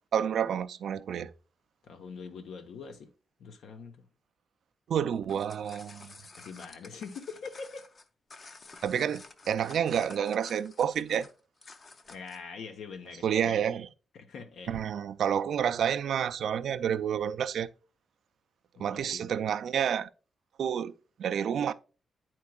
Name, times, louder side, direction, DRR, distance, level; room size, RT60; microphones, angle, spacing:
voice 1, 0.1-1.3 4.9-6.1 8.8-11.3 13.2-13.9 14.7-17.7 18.8-20.1 20.6-20.9 21.2-21.7, right 8 dB, 75° right, 0.4 m, -29 dB
voice 2, 1.8-3.1 3.4-4.1 6.2-7.9 12.1-13.6 14.1-14.8 18.8-19.3, left 5 dB, 85° left, 0.8 m, -44 dB
sound 1, 5.1-12.5, left 3 dB, 40° left, 0.6 m, -51 dB
9.4 x 4.5 x 2.2 m
cardioid pair, 110°, 0 cm